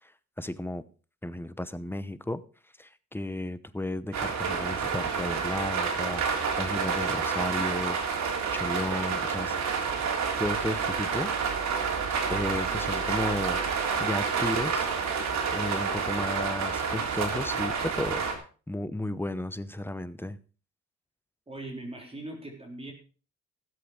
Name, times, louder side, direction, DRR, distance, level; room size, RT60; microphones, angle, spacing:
voice 1, 0.4-0.8 1.2-2.4 2.8-8.0 8.5-9.6 10.4-11.3 12.3-14.9 15.5-18.2 18.7-20.4, left 1 dB, 5° left, 0.9 m, -33 dB
sound 1, 4.1-18.3, right 5 dB, 65° right, 3.6 m, -29 dB
voice 2, 21.5-22.9, right 2 dB, 20° right, 3.8 m, -40 dB
16.5 x 7.8 x 5.1 m
cardioid pair, 90°, 30 cm